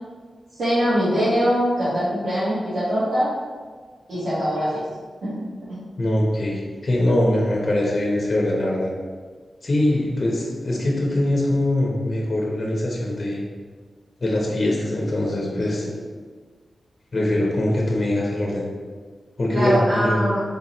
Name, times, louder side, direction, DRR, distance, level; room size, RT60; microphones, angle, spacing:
voice 1, 0.6-3.3 4.1-4.8 5.2-5.8 15.5-15.6 19.5-20.4, equal, 80° right, -13 dB, 1.4 m, -22 dB
voice 2, 6.0-8.9 9.6-13.4 14.2-15.9 17.1-18.7 19.4-20.2, left 1 dB, 45° left, -2 dB, 0.8 m, -22 dB
4.1 x 3.5 x 3.0 m, 1.5 s
wide cardioid pair, 90°, 0 cm